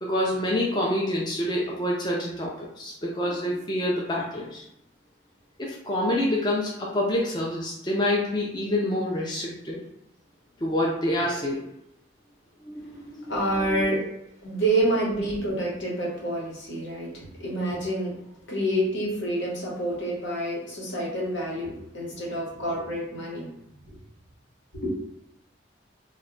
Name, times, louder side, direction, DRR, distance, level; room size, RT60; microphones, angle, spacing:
voice 1, 0.0-4.6 5.6-9.8 10.6-11.7 12.6-13.9, left 1 dB, 25° left, -3 dB, 0.4 m, -27 dB
voice 2, 13.3-17.1 17.4-18.1 18.5-23.5 23.9-24.0 24.7-25.0, right 1 dB, 75° left, -4 dB, 1.0 m, -28 dB
2.2 x 2.1 x 3.6 m, 0.81 s
head